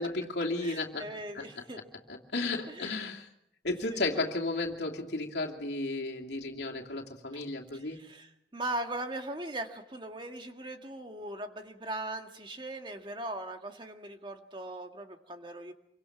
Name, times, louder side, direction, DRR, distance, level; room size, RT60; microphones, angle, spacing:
voice 1, 0.0-1.1 1.3-1.4 2.1-3.3 3.6-8.0, left 2 dB, 75° left, 0 dB, 2.6 m, -33 dB
voice 2, 0.6-1.8 2.7-2.9 3.9-4.3 7.3-7.4 7.7-15.7, right 1 dB, 25° right, 5 dB, 2.0 m, -39 dB
27.5 x 24.5 x 6.0 m, 0.76 s
head